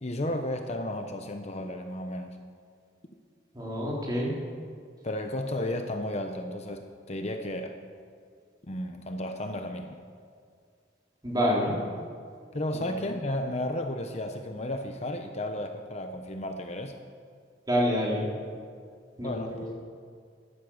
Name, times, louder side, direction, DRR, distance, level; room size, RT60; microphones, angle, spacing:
voice 1, 0.0-2.4 5.0-7.8 8.7-10.0 12.5-17.0 19.2-19.7, left 1 dB, 35° left, 5 dB, 0.9 m, -33 dB
voice 2, 3.5-4.3 11.2-11.7 12.7-12.8 17.7-18.3 19.2-19.7, equal, 20° right, -4 dB, 3.5 m, -27 dB
15.0 x 11.5 x 7.2 m, 2.2 s
head